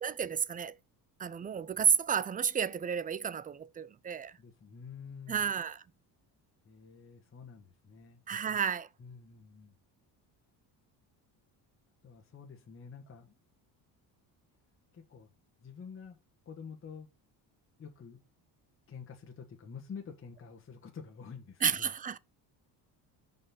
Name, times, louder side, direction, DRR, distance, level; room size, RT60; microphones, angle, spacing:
voice 1, 0.0-0.7 1.2-4.4 5.3-5.8 8.3-8.9 21.6-22.2, right 7 dB, 20° right, 0.4 m, -31 dB
voice 2, 4.4-5.5 6.6-8.2 9.0-9.7 12.0-13.4 14.9-15.3 15.6-16.2 16.4-17.1 17.8-18.2 18.9-21.9, left 6 dB, 30° left, 1.4 m, -48 dB
5.9 x 5.3 x 5.6 m
cardioid pair, 135°, 42 cm